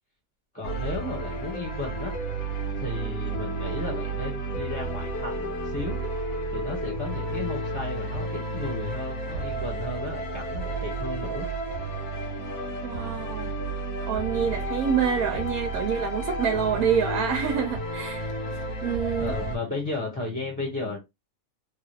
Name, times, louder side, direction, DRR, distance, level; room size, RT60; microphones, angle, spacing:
voice 1, 0.5-2.1 2.8-11.5 19.2-21.0, left 3 dB, 5° left, 0.9 m, -34 dB
sound 1, 0.6-19.6, right 2 dB, 80° left, 1.6 m, -32 dB
voice 2, 12.8-13.5 14.0-18.3 18.8-19.3, right 7 dB, 80° right, 1.1 m, -27 dB
3.3 x 2.4 x 3.1 m
omnidirectional pair, 1.5 m